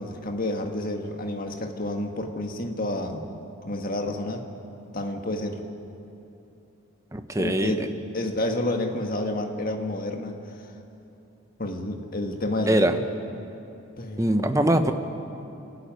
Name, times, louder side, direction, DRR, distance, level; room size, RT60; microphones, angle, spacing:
voice 1, 0.0-3.2 3.6-4.4 4.9-5.6 7.4-10.7 11.6-13.0 14.0-14.5, left 1 dB, 40° left, 3 dB, 1.8 m, -30 dB
voice 2, 7.1-7.7 12.7-12.9 14.2-14.9, right 1 dB, 15° right, 7 dB, 1.0 m, -22 dB
30.0 x 12.5 x 9.3 m, 2.8 s
head